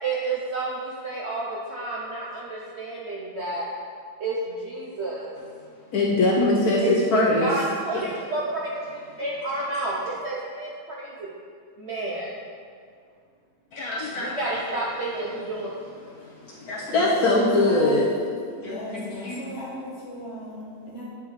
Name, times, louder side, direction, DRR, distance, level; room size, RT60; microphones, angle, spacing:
voice 1, 0.0-3.7 4.2-5.3 6.8-6.9 7.4-8.7 9.2-11.3 11.8-12.4 14.2-15.7, right 2 dB, 65° right, -5 dB, 0.7 m, -30 dB
voice 2, 5.9-7.5 7.9-8.1 9.6-9.7 13.7-14.6 15.1-15.3 16.2-18.1 18.6-18.7 19.2-19.4, left 2 dB, 65° left, -4 dB, 1.1 m, -22 dB
voice 3, 16.3-18.2 18.5-21.0, left 1 dB, 40° left, -8 dB, 1.6 m, -37 dB
9.2 x 3.5 x 3.1 m, 2.1 s
omnidirectional pair, 1.9 m